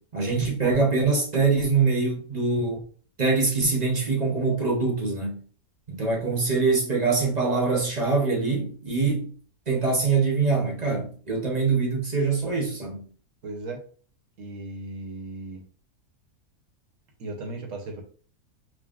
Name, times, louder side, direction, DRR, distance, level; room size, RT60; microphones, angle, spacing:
voice 1, 0.1-2.8 3.2-5.4 5.9-9.3 9.7-13.1, right 4 dB, 30° right, 1.0 m, -24 dB
voice 2, 13.4-13.8 14.4-15.6 17.2-18.0, right 2 dB, 60° right, 1.3 m, -36 dB
6.0 x 2.2 x 2.4 m
omnidirectional pair, 1.6 m